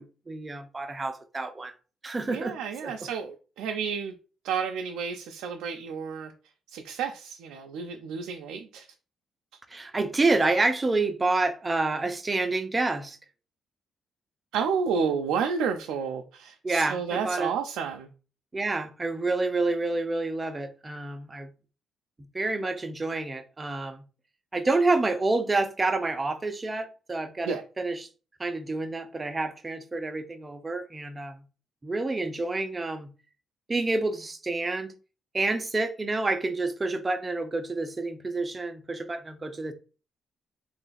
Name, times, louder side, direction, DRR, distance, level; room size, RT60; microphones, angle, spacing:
voice 1, 0.0-1.7 2.0-2.6 2.8-2.9 9.7-13.2 16.6-17.5 18.5-21.5 22.3-24.0 24.5-28.1 28.4-31.4 31.8-33.1 33.7-34.9 35.3-39.7, right 3 dB, 25° right, 0.6 m, -28 dB
voice 2, 2.3-4.1 4.4-6.3 6.7-8.9 14.5-18.1 27.4-27.6, right 6 dB, 90° right, 0.4 m, -31 dB
3.2 x 2.5 x 3.9 m
cardioid pair, 90°, 0 cm